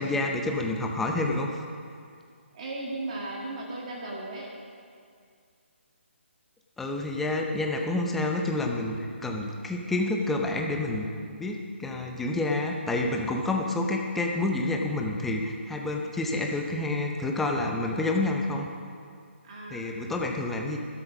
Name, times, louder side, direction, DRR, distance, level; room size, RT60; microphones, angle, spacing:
voice 1, 0.0-1.5 6.8-11.1 11.4-18.7 19.7-20.8, left 2 dB, 5° left, 1 dB, 0.6 m, -28 dB
voice 2, 2.5-4.5 19.4-19.8, right 2 dB, 35° right, -2 dB, 1.9 m, -36 dB
12.5 x 12.5 x 6.0 m, 2.3 s
hypercardioid pair, 170°, 7 cm